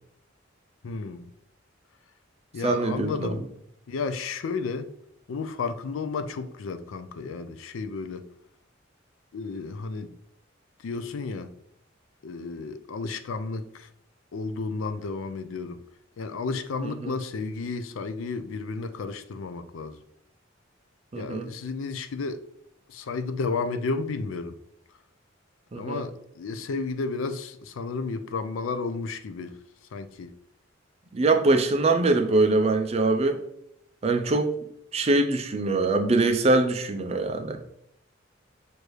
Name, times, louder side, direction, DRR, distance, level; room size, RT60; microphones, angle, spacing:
voice 1, 0.8-1.3 2.5-3.4 3.9-4.9 5.3-8.3 9.3-10.1 10.8-11.5 12.2-13.9 14.3-15.8 16.2-20.0 21.1-22.4 22.9-24.5 25.7-29.6 29.9-30.3, left 4 dB, 85° left, 0.4 m, -32 dB
voice 2, 2.6-3.5 16.8-17.1 21.1-21.5 25.7-26.0 31.1-33.4 34.0-34.5 34.9-37.6, right 3 dB, 30° right, 0.5 m, -23 dB
6.4 x 2.6 x 3.1 m
head